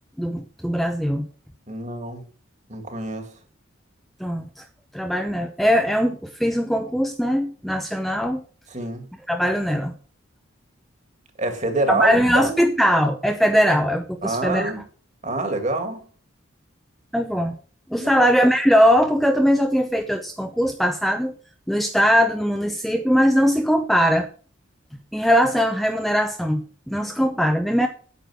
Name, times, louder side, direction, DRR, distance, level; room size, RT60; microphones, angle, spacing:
voice 1, 0.2-1.3 4.2-4.6 4.9-8.4 9.3-9.9 11.9-14.7 17.1-17.5 17.9-21.3 21.7-24.3 25.1-27.9, equal, ahead, 0.8 m, -20 dB
voice 2, 1.7-2.2 2.7-3.3 8.7-9.1 11.4-12.5 14.2-14.8 15.2-16.0 18.0-18.3, right 2 dB, 35° right, 2.5 m, -26 dB
9.4 x 8.7 x 6.3 m
head